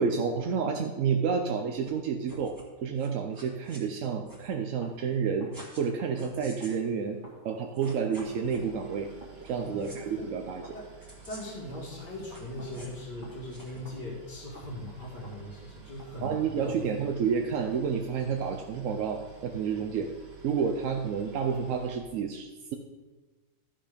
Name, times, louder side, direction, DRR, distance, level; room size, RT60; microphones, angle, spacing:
voice 1, 0.0-5.5 5.8-7.2 7.4-9.1 9.4-10.6 16.2-20.1 20.4-22.8, right 6 dB, 65° right, 4 dB, 0.9 m, -30 dB
sound 1, 1.8-1.9 2.2-2.7 2.9-3.8 4.2-4.5 5.5-5.9 6.2-6.8 7.5-7.6 7.7-8.7 9.4-9.5 9.8-10.0 11.0-11.6 12.2-13.0 13.5-13.8, right 1 dB, 10° right, 1.6 m, -48 dB
sound 2, 4.5-17.0, right 2 dB, 30° right, 2.0 m, -53 dB
Boat Water vehicle, 8.2-22.0, right 6 dB, 80° right, 2.2 m, -52 dB
voice 2, 9.5-10.3 10.7-10.9 11.3-17.0, left 1 dB, 70° left, -7 dB, 2.6 m, -40 dB
12.5 x 5.5 x 5.1 m, 1.3 s
omnidirectional pair, 1.8 m